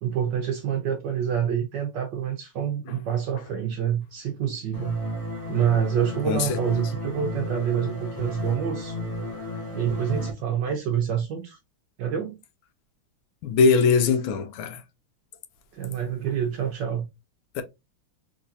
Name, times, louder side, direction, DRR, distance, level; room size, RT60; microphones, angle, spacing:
voice 1, 0.0-5.0 5.5-9.0 9.7-11.6 12.0-12.4 15.7-17.1, right 8 dB, 75° right, 1.0 m, -27 dB
sound 1, 4.7-10.3, equal, 30° left, 1.5 m, -32 dB
voice 2, 6.3-6.6 13.4-14.8 17.5-17.6, left 5 dB, 75° left, 1.4 m, -21 dB
3.8 x 3.1 x 2.5 m
omnidirectional pair, 2.4 m